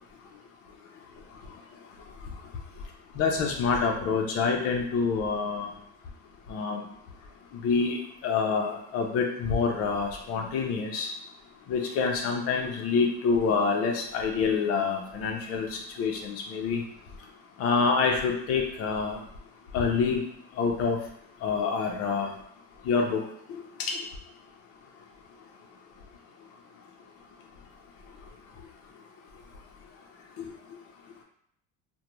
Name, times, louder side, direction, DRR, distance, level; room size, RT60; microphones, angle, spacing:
voice 1, 3.2-5.7 6.5-6.8 7.5-8.0 8.2-11.1 11.7-16.8 17.6-19.2 19.7-20.2 20.6-21.0 21.4-22.3 22.9-23.2 23.9-24.0, left 5 dB, 50° left, 1 dB, 0.6 m, -26 dB
2.4 x 2.2 x 3.0 m, 0.69 s
cardioid pair, 130°, 32 cm